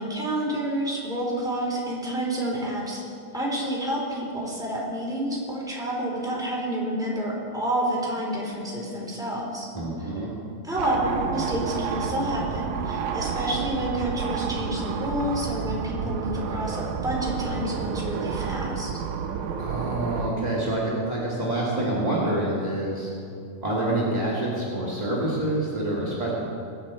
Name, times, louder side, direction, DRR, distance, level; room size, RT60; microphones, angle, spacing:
voice 1, 0.0-3.0 3.3-9.7 10.6-18.9, right 1 dB, ahead, -5 dB, 2.3 m, -29 dB
voice 2, 9.7-10.3 19.6-23.1 23.6-26.3, right 1 dB, 25° right, -6 dB, 0.9 m, -27 dB
sound 1, 10.8-20.3, right 6 dB, 80° right, 1.8 m, -30 dB
22.0 x 8.9 x 4.4 m, 2.5 s
omnidirectional pair, 4.5 m